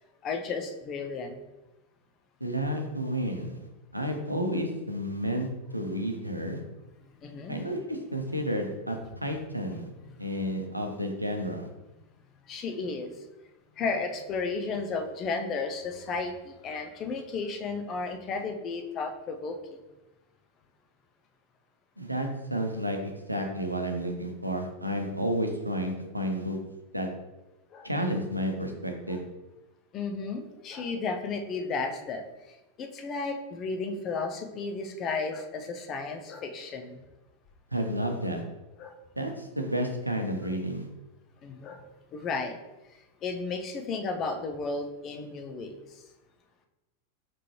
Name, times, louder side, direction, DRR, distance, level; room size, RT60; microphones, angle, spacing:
voice 1, 0.2-1.4 7.2-7.6 8.3-8.4 9.7-9.8 12.5-13.1 13.8-19.6 27.7-27.9 29.9-32.2 32.8-37.0 38.8-39.0 41.4-41.9 42.1-42.6 43.2-46.0, left 4 dB, 30° left, 5 dB, 0.6 m, -33 dB
voice 2, 2.4-3.6 3.9-5.5 5.7-6.6 7.5-9.9 10.2-11.7 22.0-26.6 26.9-27.1 27.8-29.2 37.7-38.4 39.2-40.9, equal, 90° right, 3 dB, 0.6 m, -31 dB
5.0 x 3.7 x 2.9 m, 1.0 s
figure-of-eight pair, 90°, 0 cm